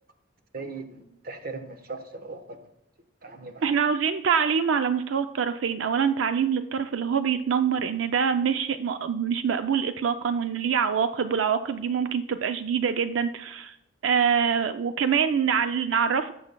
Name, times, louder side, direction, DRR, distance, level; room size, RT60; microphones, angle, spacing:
voice 1, 0.5-2.7 3.2-3.7, right 3 dB, 50° right, 7 dB, 1.1 m, -39 dB
voice 2, 3.6-13.8 14.0-16.3, right 7 dB, 85° right, 9 dB, 0.4 m, -25 dB
16.0 x 7.0 x 2.2 m, 0.83 s
head